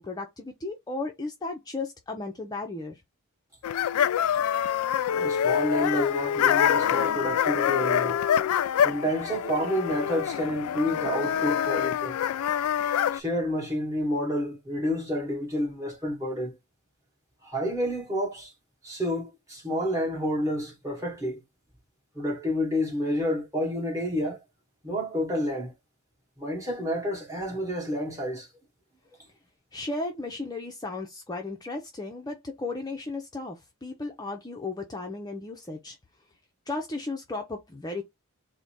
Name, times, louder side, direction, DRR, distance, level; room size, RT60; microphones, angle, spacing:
voice 1, 0.0-3.0 29.7-36.0 36.7-38.0, left 3 dB, 20° left, 0.5 m, -35 dB
sound 1, 3.6-13.2, left 9 dB, 80° left, 0.3 m, -25 dB
voice 2, 5.1-8.2 8.8-12.2 13.1-16.5 17.4-18.5 18.8-21.4 22.2-24.4 24.8-25.7 26.4-28.5, equal, 15° right, 1.8 m, -29 dB
3.9 x 2.1 x 4.5 m
head